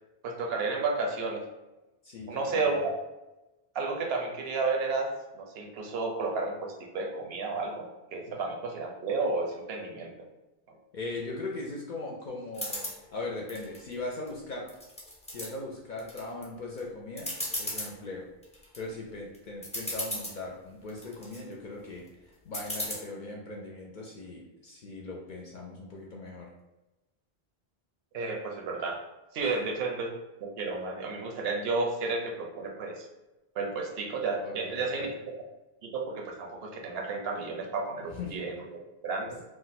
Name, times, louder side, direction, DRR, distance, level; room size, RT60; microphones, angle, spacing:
voice 1, 0.2-1.5 2.3-2.9 3.7-7.9 8.1-10.1 10.7-10.8 28.1-29.0 29.3-30.1 30.4-33.1 33.6-35.1 35.8-39.4, right 3 dB, 80° right, 1 dB, 0.8 m, -32 dB
voice 2, 2.0-2.9 8.3-8.4 10.9-14.7 15.3-17.3 17.6-18.3 18.7-26.5 29.4-29.6 34.4-35.1 38.1-38.4, left 2 dB, 60° left, -2 dB, 0.6 m, -39 dB
sound 1, 12.5-13.0 13.5-14.3 14.7-15.5 16.0-16.4 16.8-16.9 17.2-17.9 18.4-18.8 19.3-19.4 19.6-20.4 20.9-21.4 22.5-22.9, left 1 dB, 10° left, 0.5 m, -35 dB
2.5 x 2.1 x 4.0 m, 1.0 s
omnidirectional pair, 1.0 m